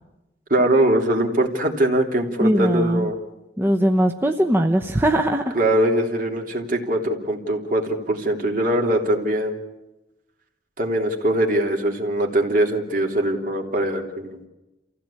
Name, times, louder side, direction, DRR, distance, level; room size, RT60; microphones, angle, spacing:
voice 1, 0.5-3.2 5.5-9.6 10.8-14.4, right 1 dB, 50° right, 2 dB, 3.4 m, -22 dB
voice 2, 2.4-3.1 3.6-5.6, right 1 dB, 15° right, 3 dB, 0.9 m, -20 dB
28.5 x 16.0 x 8.7 m, 0.99 s
head